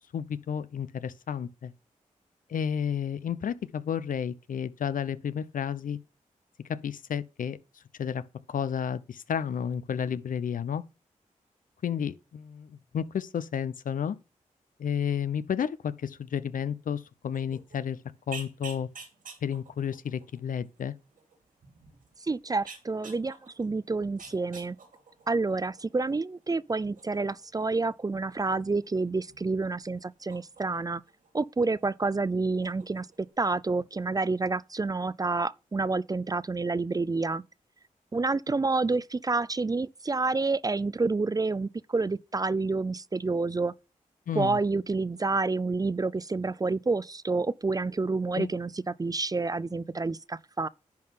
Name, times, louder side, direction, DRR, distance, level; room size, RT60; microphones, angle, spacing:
voice 1, 0.1-1.7 2.5-6.0 6.7-7.6 8.0-8.2 8.5-10.8 11.8-14.2 14.8-18.0 18.3-18.9 19.4-20.9 44.3-44.6 48.3-48.5, left 8 dB, 70° left, 0.7 m, -31 dB
sound 1, 17.3-31.9 32.2-33.3, right 5 dB, 75° right, 2.5 m, -51 dB
voice 2, 22.2-24.8 25.3-31.0 31.3-37.4 38.1-43.7 44.3-50.7, right 3 dB, 25° right, 0.4 m, -29 dB
10.5 x 3.8 x 5.6 m
cardioid pair, 45°, 14 cm